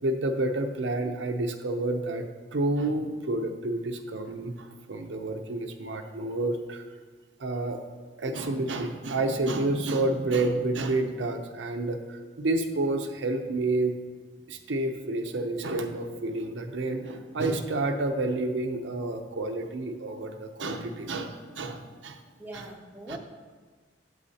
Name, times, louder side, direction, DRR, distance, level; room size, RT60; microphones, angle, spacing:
voice 1, 0.0-6.8 7.4-7.8 8.2-13.9 14.5-22.2 23.1-23.2, right 2 dB, 80° right, 5 dB, 0.6 m, -29 dB
voice 2, 22.4-23.2, right 1 dB, 10° right, 1 dB, 0.6 m, -43 dB
8.2 x 7.8 x 2.8 m, 1.4 s
head